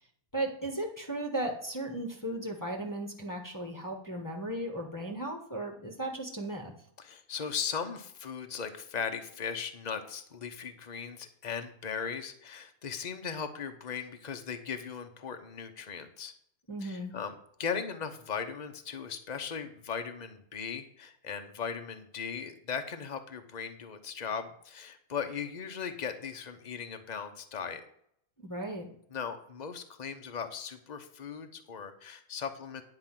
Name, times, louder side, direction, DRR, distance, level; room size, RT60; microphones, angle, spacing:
voice 1, 0.3-6.7 16.7-17.1 28.4-28.9, right 1 dB, 15° left, -1 dB, 1.3 m, -36 dB
voice 2, 7.0-16.3 16.8-27.8 29.1-32.8, left 6 dB, 35° left, 7 dB, 1.0 m, -38 dB
10.5 x 4.8 x 7.5 m, 0.68 s
omnidirectional pair, 1.5 m